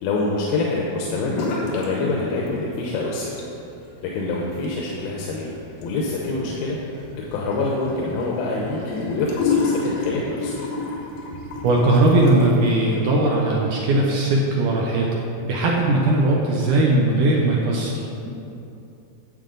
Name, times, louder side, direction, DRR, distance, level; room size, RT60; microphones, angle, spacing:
voice 1, 0.0-3.3 4.0-5.5 5.8-6.8 7.3-10.5, left 3 dB, 90° left, -2 dB, 2.8 m, -25 dB
sound 1, 1.3-1.9 2.2-2.8 3.2-12.7, left 4 dB, 70° left, 2.8 m, -30 dB
voice 2, 11.6-15.1 15.4-17.9, right 2 dB, 70° right, -2 dB, 2.1 m, -19 dB
12.5 x 7.8 x 3.9 m, 2.7 s
omnidirectional pair, 4.2 m